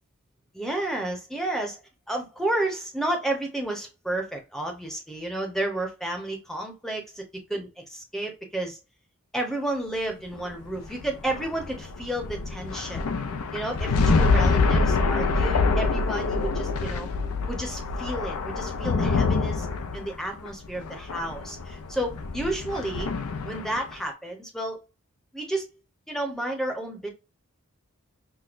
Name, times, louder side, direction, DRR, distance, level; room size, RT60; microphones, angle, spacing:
voice 1, 0.5-1.8 2.1-7.2 7.5-8.8 9.3-13.1 13.5-17.1 17.5-19.7 19.9-23.1 23.4-24.8 25.3-25.7 26.1-27.1, right 1 dB, ahead, 2 dB, 0.8 m, -31 dB
sound 1, 10.3-23.9, left 4 dB, 75° left, 0.5 m, -26 dB
6.0 x 2.1 x 2.5 m, 0.27 s
head